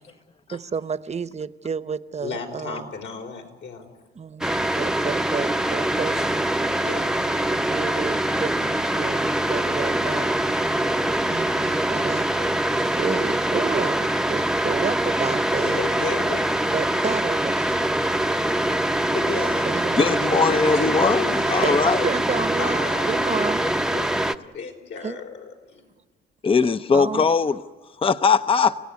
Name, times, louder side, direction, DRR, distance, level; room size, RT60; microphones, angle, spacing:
voice 1, 0.5-2.9 4.1-7.0 7.5-10.3 11.3-15.8 16.7-17.7 19.7-20.4 21.4-23.7 25.0-25.2 26.9-27.3, right 5 dB, 35° right, 13 dB, 1.0 m, -31 dB
voice 2, 2.2-3.9 6.8-7.2 15.6-16.9 17.6-17.8 18.4-18.5 19.1-19.7 20.7-22.3 22.6-25.8, left 5 dB, 70° left, 3 dB, 5.2 m, -35 dB
sound 1, 4.4-24.4, right 1 dB, 5° right, 0.8 m, -23 dB
voice 3, 20.0-22.0 26.4-27.6 28.0-28.8, left 5 dB, 25° left, 12 dB, 0.7 m, -20 dB
30.0 x 17.0 x 9.7 m, 1.4 s
cardioid pair, 90°, 20 cm